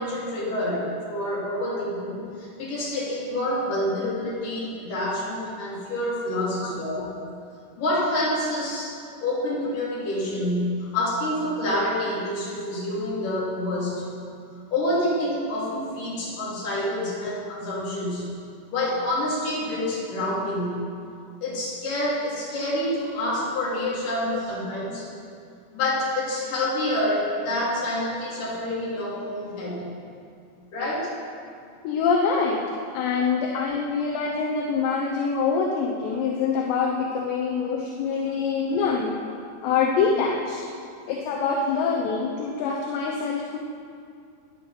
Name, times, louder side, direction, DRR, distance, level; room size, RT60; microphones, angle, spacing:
voice 1, 0.0-7.1 7.8-14.0 14.7-18.3 18.7-20.8 21.4-25.1 25.7-29.9 30.7-31.1 38.8-38.9, left 1 dB, 45° left, -6 dB, 4.6 m, -27 dB
voice 2, 6.6-7.1 31.8-32.6 32.9-39.2 39.6-40.6 41.1-43.6, left 5 dB, 75° left, -1 dB, 2.9 m, -25 dB
16.5 x 10.0 x 6.0 m, 2.3 s
omnidirectional pair, 5.9 m